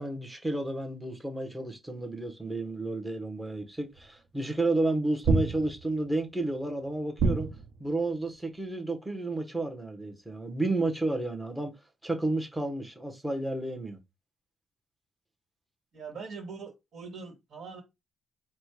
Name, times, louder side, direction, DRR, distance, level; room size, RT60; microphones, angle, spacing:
voice 1, 0.0-7.5 7.8-11.7 12.0-14.0, right 2 dB, 5° right, 0.9 m, -31 dB
sound 1, 4.0-4.1 5.2-6.1 7.2-7.9, right 3 dB, 80° right, 0.8 m, -27 dB
voice 2, 15.9-17.8, right 5 dB, 55° right, 1.5 m, -42 dB
4.2 x 2.1 x 4.6 m
cardioid pair, 130°, 0 cm